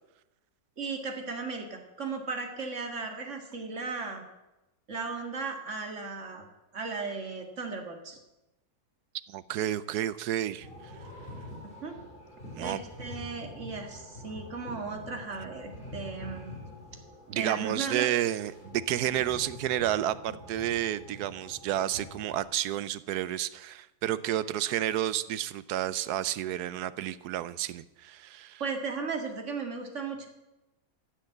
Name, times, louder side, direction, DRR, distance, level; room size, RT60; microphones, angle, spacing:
voice 1, 0.8-4.2 4.9-6.5 6.7-8.2 11.6-11.9 12.6-16.5 17.3-18.1 28.6-30.3, right 4 dB, 50° right, 4 dB, 2.3 m, -36 dB
voice 2, 9.3-10.7 12.6-12.8 17.3-28.6, right 12 dB, 85° right, 17 dB, 1.2 m, -31 dB
sound 1, 10.6-22.4, left 1 dB, 35° left, 4.6 m, -46 dB
14.5 x 7.7 x 7.8 m, 0.97 s
omnidirectional pair, 1.6 m